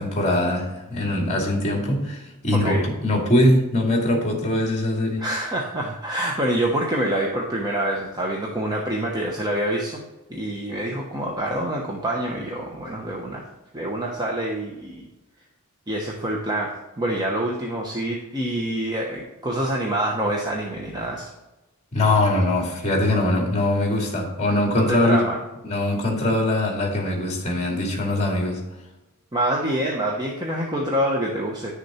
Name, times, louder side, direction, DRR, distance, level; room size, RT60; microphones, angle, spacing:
voice 1, 0.0-5.3 21.9-25.3 25.6-28.6, left 1 dB, 30° left, 1 dB, 2.4 m, -22 dB
voice 2, 2.5-2.9 5.2-10.0 10.3-13.4 13.7-15.1 15.9-21.3 24.8-25.4 29.3-31.8, right 1 dB, 20° right, -1 dB, 1.0 m, -26 dB
10.5 x 6.6 x 4.3 m, 1.0 s
head